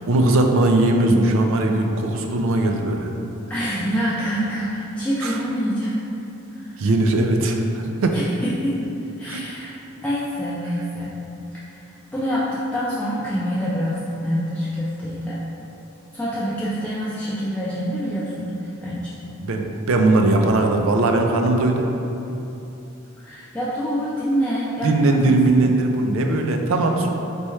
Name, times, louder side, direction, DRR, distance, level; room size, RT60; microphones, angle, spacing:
voice 1, 0.1-3.1 5.2-5.4 6.8-8.2 9.2-9.4 19.4-21.9 24.8-27.1, right 2 dB, 70° right, 3 dB, 0.4 m, -19 dB
voice 2, 3.5-6.0 6.5-6.9 8.1-8.8 9.2-9.7 10.0-11.1 11.7-11.8 12.1-15.4 16.1-19.1 23.2-25.6, equal, 5° left, -9 dB, 0.3 m, -26 dB
4.2 x 3.4 x 3.1 m, 3.0 s
head